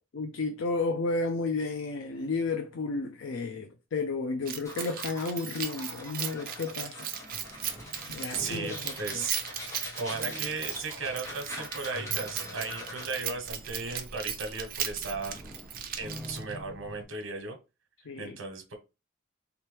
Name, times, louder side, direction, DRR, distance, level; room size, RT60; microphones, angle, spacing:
voice 1, 0.1-7.1 8.1-9.2 18.1-18.4, left 3 dB, 85° left, 0.5 m, -32 dB
Keys jangling, 4.5-16.6, right 9 dB, 45° right, 0.5 m, -37 dB
sound 1, 4.6-13.3, left 1 dB, 15° left, 1.1 m, -43 dB
sound 2, 7.3-17.0, equal, 5° right, 0.6 m, -47 dB
voice 2, 8.3-9.4 10.0-15.3 16.0-17.6 18.2-18.7, right 4 dB, 85° right, 1.0 m, -36 dB
3.5 x 2.9 x 3.3 m
head